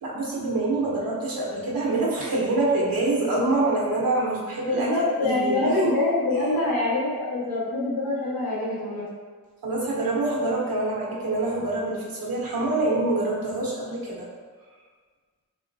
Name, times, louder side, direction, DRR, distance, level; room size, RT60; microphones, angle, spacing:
voice 1, 0.0-4.9 5.2-6.0 9.6-14.3, right 2 dB, 75° right, -5 dB, 1.1 m, -25 dB
voice 2, 4.7-9.0, left 2 dB, 85° left, -7 dB, 1.3 m, -25 dB
4.1 x 3.1 x 2.7 m, 1.5 s
cardioid pair, 65°, 35 cm